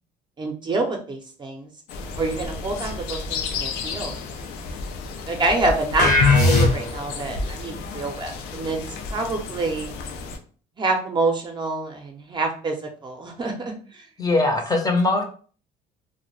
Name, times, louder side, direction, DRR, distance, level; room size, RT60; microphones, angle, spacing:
voice 1, 0.4-1.7 2.2-4.2 5.3-8.8 9.1-9.9 10.8-14.1, right 2 dB, 25° right, 2 dB, 0.5 m, -27 dB
sound 1, 1.9-10.4, left 4 dB, 90° left, 0.5 m, -33 dB
sound 2, 6.0-7.1, left 3 dB, 70° left, 1.0 m, -17 dB
voice 2, 14.2-15.2, left 2 dB, 20° left, 2 dB, 0.5 m, -21 dB
2.2 x 2.1 x 3.0 m, 0.41 s
cardioid pair, 110°, 17 cm